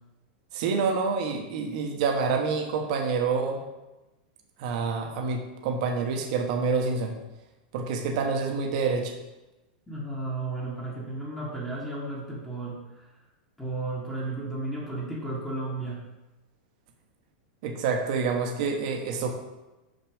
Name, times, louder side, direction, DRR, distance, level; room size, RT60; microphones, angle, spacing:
voice 1, 0.5-3.6 4.6-7.1 7.7-9.1 17.6-19.3, right 5 dB, 50° right, 3 dB, 1.1 m, -27 dB
voice 2, 9.9-13.1 13.6-16.1, right 2 dB, 5° left, -6 dB, 1.3 m, -34 dB
6.3 x 5.8 x 5.0 m, 1.0 s
supercardioid pair, 160°, 5 cm